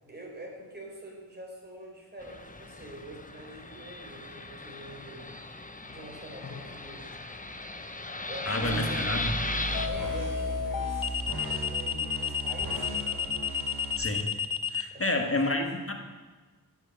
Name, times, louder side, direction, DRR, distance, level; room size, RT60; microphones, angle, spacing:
voice 1, 0.0-5.3 5.9-7.1 7.8-9.1 9.8-13.2 14.9-15.7, right 1 dB, 25° right, -1 dB, 4.3 m, -45 dB
Fixed-wing aircraft airplane, 2.2-9.9, left 2 dB, 20° left, 1.0 m, -37 dB
sound 1, 6.4-6.8 9.7-14.8, left 8 dB, 60° left, 0.9 m, -31 dB
voice 2, 8.5-9.4 14.0-14.3 14.7-15.9, left 2 dB, 35° left, 3 dB, 1.7 m, -29 dB
sound 2, 8.6-13.9, right 1 dB, 80° right, 3.3 m, -36 dB
14.5 x 6.9 x 8.6 m, 1.3 s
wide cardioid pair, 70°, 38 cm